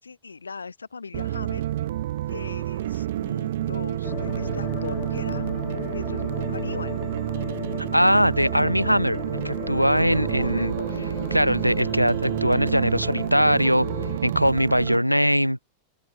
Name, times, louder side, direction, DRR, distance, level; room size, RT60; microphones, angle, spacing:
voice 1, 0.0-1.6 2.3-5.4 5.9-7.0 10.4-11.1 15.0-15.1, left 4 dB, 75° left, 5.4 m, -39 dB
sound 1, 1.1-15.0, right 13 dB, 55° right, 1.8 m, -29 dB
sound 2, 4.0-14.2, left 32 dB, 45° left, 1.0 m, -36 dB
voice 2, 7.9-9.2 9.4-10.7 11.3-13.9 14.2-15.7, equal, 90° right, 0.6 m, -21 dB
open air
figure-of-eight pair, 90°, 0 cm